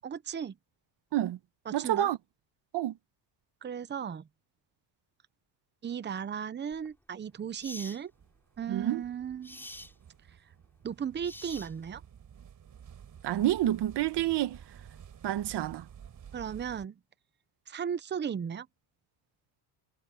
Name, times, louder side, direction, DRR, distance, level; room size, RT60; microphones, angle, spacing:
voice 1, 0.0-0.6 1.7-2.1 3.6-4.3 5.8-8.1 8.6-9.6 10.8-12.0 16.3-17.0 17.7-18.7, right 8 dB, 20° right, 0.8 m, -36 dB
voice 2, 1.7-2.2 2.7-2.9 8.7-9.0 13.2-14.6 15.2-15.8, right 13 dB, 55° right, 1.6 m, -28 dB
sound 1, 6.7-6.9 7.6-8.0 9.4-9.9 11.2-12.0, left 1 dB, 5° left, 6.9 m, -45 dB
sound 2, 8.1-16.9, right 8 dB, 40° right, 5.7 m, -52 dB
cardioid pair, 130°, 49 cm